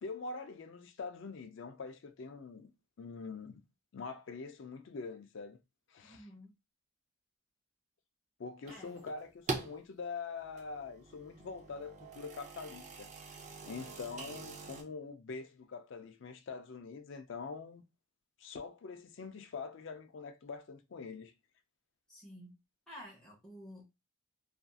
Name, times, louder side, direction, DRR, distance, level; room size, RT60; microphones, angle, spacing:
voice 1, 0.0-2.7 3.0-3.6 3.9-5.6 5.9-6.3 8.4-13.1 13.7-17.8 18.4-21.3, left 4 dB, 55° left, 0.4 m, -44 dB
voice 2, 6.0-6.5 8.7-8.9 22.1-22.5 22.9-23.8, equal, 5° left, 0.9 m, -51 dB
sound 1, 8.7-9.8 10.4-14.8, right 3 dB, 35° right, 0.4 m, -44 dB
2.6 x 2.4 x 2.3 m
head